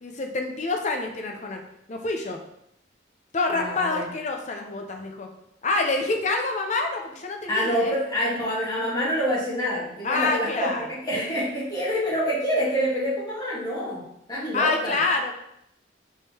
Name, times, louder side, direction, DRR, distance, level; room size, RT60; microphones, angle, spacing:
voice 1, 0.0-1.6 1.9-2.4 3.3-5.3 5.6-7.9 10.0-10.9 14.5-15.3, left 3 dB, 35° left, 3 dB, 0.6 m, -27 dB
voice 2, 3.5-4.0 7.5-14.0 14.3-15.0, equal, 20° left, -7 dB, 1.4 m, -26 dB
5.1 x 3.6 x 2.8 m, 0.78 s
head